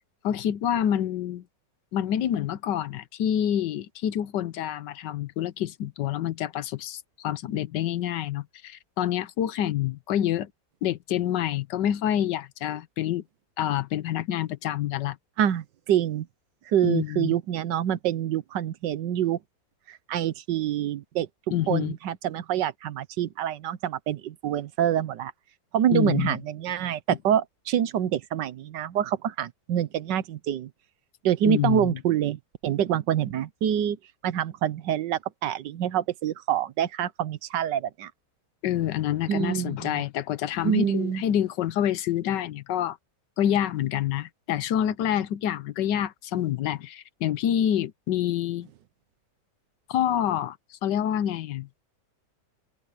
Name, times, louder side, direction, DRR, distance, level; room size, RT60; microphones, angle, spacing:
voice 1, 0.2-1.4 1.9-10.5 10.8-13.2 13.6-15.2 16.8-17.3 21.5-21.9 25.9-26.4 31.4-31.9 38.6-43.0 43.4-48.7 49.9-51.7, left 11 dB, 85° left, 1.4 m, -27 dB
voice 2, 15.4-16.3 16.7-19.4 19.9-21.3 21.7-25.3 25.7-30.7 31.2-34.0 34.2-38.1 39.3-40.0 40.6-41.2, right 10 dB, 80° right, 1.5 m, -26 dB
omnidirectional pair, 1.9 m